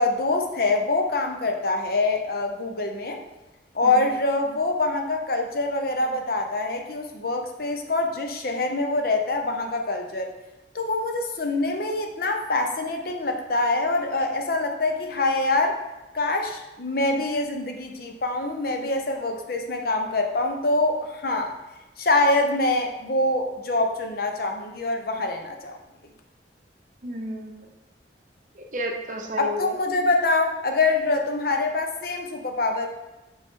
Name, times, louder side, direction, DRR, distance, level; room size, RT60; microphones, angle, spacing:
voice 1, 0.0-3.2 3.7-10.3 10.7-15.8 16.1-21.5 22.0-25.8 29.4-32.9, left 2 dB, 55° left, 4 dB, 0.8 m, -25 dB
voice 2, 27.0-27.7 28.6-29.7, equal, 45° right, 1 dB, 0.7 m, -32 dB
6.7 x 4.7 x 3.7 m, 1.0 s
head